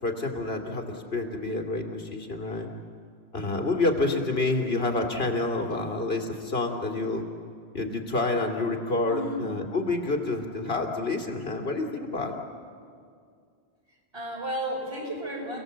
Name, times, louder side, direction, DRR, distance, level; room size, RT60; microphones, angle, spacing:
voice 1, 0.0-2.7 3.3-7.2 7.7-12.3, left 2 dB, 65° left, 2 dB, 2.8 m, -28 dB
voice 2, 9.1-9.5 14.1-15.6, equal, 80° right, -2 dB, 5.6 m, -33 dB
29.5 x 17.5 x 8.0 m, 2.2 s
omnidirectional pair, 1.1 m